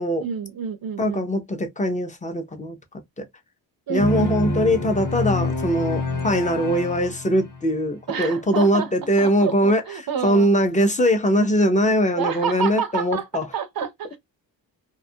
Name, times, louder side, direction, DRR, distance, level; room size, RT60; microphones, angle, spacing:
voice 1, 0.2-1.3 3.9-4.4 8.1-10.5 12.2-14.2, right 7 dB, 55° right, 0.5 m, -29 dB
voice 2, 1.0-2.8 3.2-3.3 3.9-9.8 10.2-13.4, equal, 15° left, 0.4 m, -21 dB
sound 1, 4.0-7.8, left 2 dB, 45° left, 1.0 m, -27 dB
2.6 x 2.3 x 2.6 m
wide cardioid pair, 165°, 45 cm